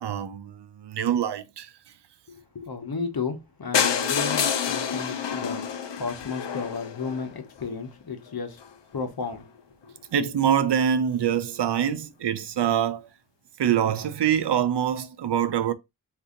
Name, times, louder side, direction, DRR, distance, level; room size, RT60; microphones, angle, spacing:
voice 1, 0.0-1.7 10.1-13.1 13.6-15.7, right 9 dB, 75° right, 0.5 m, -25 dB
voice 2, 2.3-8.6 8.9-9.5 9.8-10.0, left 5 dB, 60° left, 0.9 m, -33 dB
sound 1, 3.7-7.6 8.3-8.4 8.6-8.7 9.0-9.1 9.3-9.4, left 7 dB, 85° left, 0.6 m, -28 dB
2.7 x 2.6 x 3.7 m
wide cardioid pair, 55°, 42 cm